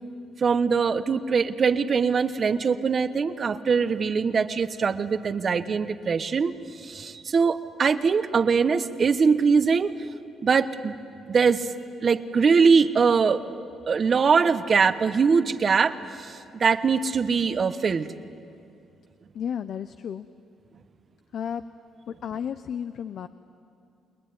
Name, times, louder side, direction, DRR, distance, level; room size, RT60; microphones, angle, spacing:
voice 1, 0.4-9.9 10.4-10.9 11.3-11.7 12.0-13.4 13.9-18.1, right 5 dB, 45° right, 12 dB, 1.1 m, -22 dB
voice 2, 19.3-20.3 21.3-21.7 22.1-23.3, left 8 dB, 65° left, 12 dB, 0.7 m, -32 dB
29.0 x 20.5 x 9.6 m, 2.5 s
cardioid pair, 90°, 0 cm